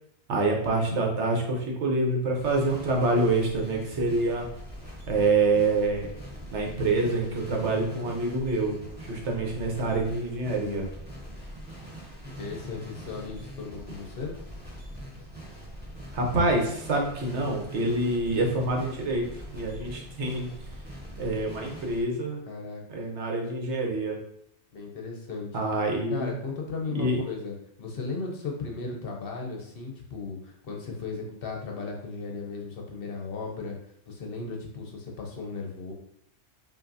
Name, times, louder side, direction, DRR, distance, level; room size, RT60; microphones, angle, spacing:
voice 1, 0.3-4.5 5.1-6.1 6.5-10.9 16.1-20.5 21.2-22.4 22.9-24.2 25.5-26.3 26.9-27.2, right 2 dB, 75° right, 1 dB, 1.2 m, -26 dB
sound 1, 2.4-22.0, equal, 10° right, 1.1 m, -43 dB
voice 2, 12.4-14.3 22.5-22.8 24.7-25.5 25.9-33.8 34.1-35.9, left 4 dB, 55° left, 0 dB, 0.9 m, -36 dB
5.5 x 2.6 x 2.6 m, 0.71 s
omnidirectional pair, 1.2 m